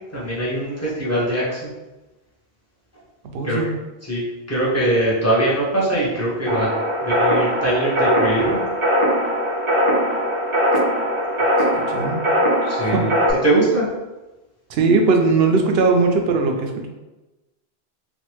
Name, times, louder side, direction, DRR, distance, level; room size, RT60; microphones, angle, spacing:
voice 1, 0.1-1.7 3.4-3.6 4.0-4.2 4.5-6.7 7.0-8.6 12.6-13.1 13.4-13.9, right 1 dB, 15° left, -7 dB, 0.9 m, -21 dB
voice 2, 3.3-3.7 11.9-12.2 12.8-13.2 14.7-16.9, right 4 dB, 75° right, 2 dB, 0.8 m, -19 dB
sound 1, 6.5-13.3, equal, 35° right, 0.6 m, -20 dB
3.2 x 2.4 x 3.0 m, 1.1 s
omnidirectional pair, 1.1 m